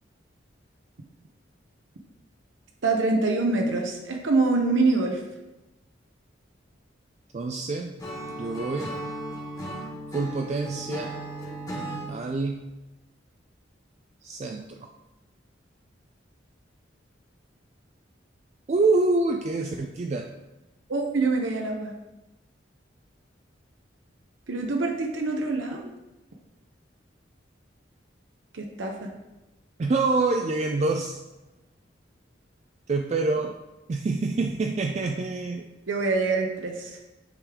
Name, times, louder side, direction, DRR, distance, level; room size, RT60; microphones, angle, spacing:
voice 1, 2.8-5.2 20.9-21.9 24.5-25.9 28.5-29.1 35.9-37.0, right 3 dB, 85° right, 2 dB, 0.7 m, -25 dB
voice 2, 7.3-8.0 8.4-8.9 10.1-11.1 12.1-12.7 14.2-14.7 18.7-20.3 29.8-31.2 32.9-33.6 33.9-35.6, right 3 dB, 35° right, 4 dB, 0.3 m, -26 dB
Acoustic guitar / Strum, 8.0-12.1, right 1 dB, 20° left, 1.5 m, -36 dB
9.7 x 3.3 x 3.6 m, 1.0 s
head